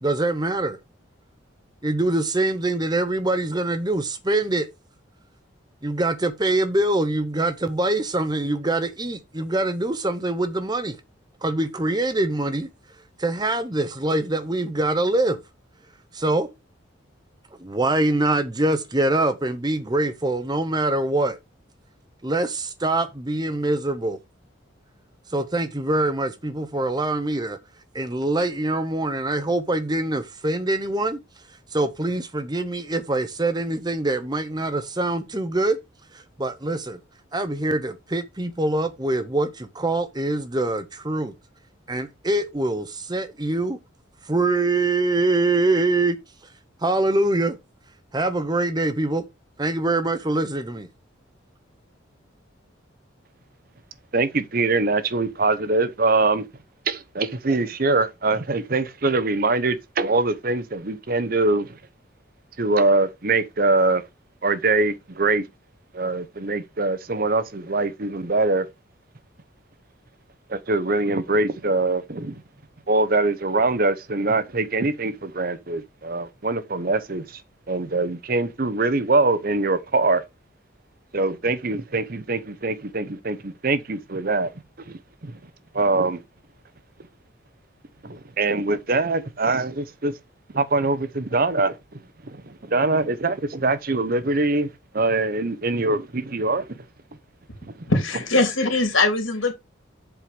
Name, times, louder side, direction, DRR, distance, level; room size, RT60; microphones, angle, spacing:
voice 1, 0.0-0.8 1.8-4.7 5.8-11.0 11.4-12.7 13.2-15.4 16.1-16.5 17.6-21.4 22.2-24.2 25.3-27.6 27.9-31.2 31.7-35.8 36.4-37.0 37.3-41.3 41.9-43.8 44.3-46.2 46.8-47.6 48.1-49.3 49.6-50.9, right 2 dB, 20° right, 0.9 m, -24 dB
voice 2, 54.1-56.5 56.9-61.8 62.6-64.0 64.4-65.4 65.9-68.7 70.5-72.4 72.9-77.4 77.7-80.2 81.1-84.5 84.9-85.3 85.7-86.2 88.0-90.1 90.5-91.8 92.2-96.8 97.6-97.9, right 3 dB, 45° right, 0.8 m, -23 dB
voice 3, 97.9-99.5, left 2 dB, 80° left, 3.1 m, -21 dB
7.7 x 5.0 x 5.2 m
head